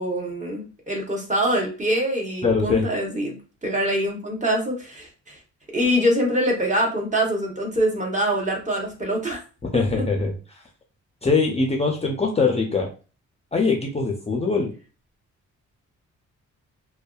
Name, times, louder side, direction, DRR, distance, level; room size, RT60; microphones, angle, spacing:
voice 1, 0.0-3.4 3.6-5.4 5.7-9.4 9.7-10.0, equal, 25° right, 0 dB, 0.9 m, -24 dB
voice 2, 2.4-2.9 9.7-10.6 11.2-12.9 13.5-14.7, left 4 dB, 20° left, 1 dB, 0.5 m, -22 dB
2.5 x 2.2 x 2.3 m, 0.34 s
cardioid pair, 95°, 30 cm